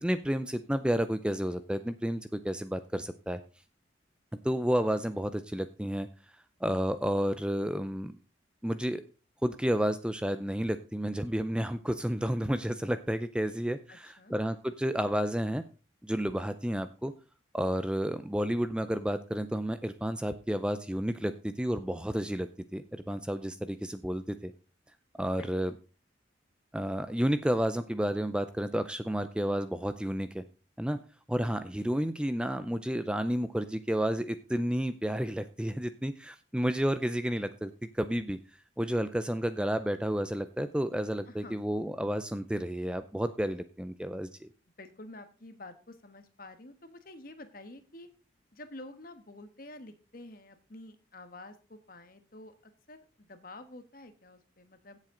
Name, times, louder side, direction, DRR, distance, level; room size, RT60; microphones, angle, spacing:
voice 1, 0.0-3.4 4.4-6.1 6.6-8.1 8.6-9.0 9.4-15.6 16.0-17.1 17.5-24.5 25.2-25.7 26.7-30.4 30.8-31.0 31.3-38.4 38.8-44.5, equal, 5° right, 11 dB, 0.5 m, -31 dB
voice 2, 13.9-14.4 25.2-25.8 41.3-41.6 44.8-48.1 48.5-55.0, left 2 dB, 45° left, 9 dB, 1.4 m, -49 dB
16.5 x 7.4 x 3.8 m, 0.34 s
head